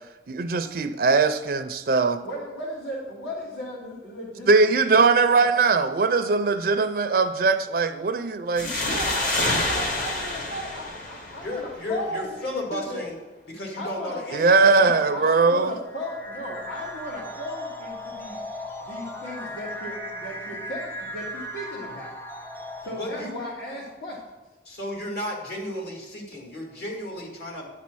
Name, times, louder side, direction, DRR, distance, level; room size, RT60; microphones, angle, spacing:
voice 1, 0.3-2.2 4.5-8.7 14.3-15.8, right 4 dB, 55° right, 9 dB, 0.4 m, -20 dB
voice 2, 2.2-5.5 8.6-13.0 13.8-14.2 14.8-18.4 18.8-22.1 22.8-24.2, equal, 80° left, -8 dB, 2.1 m, -35 dB
sound 1, 8.6-12.0, left 2 dB, 50° left, 1.3 m, -28 dB
voice 3, 11.4-13.2 13.5-14.9 23.0-23.3 24.7-27.7, left 1 dB, 65° left, -1 dB, 2.0 m, -33 dB
sound 2, 15.9-23.5, left 1 dB, 10° left, 0.6 m, -37 dB
10.0 x 4.2 x 6.1 m, 1.2 s
head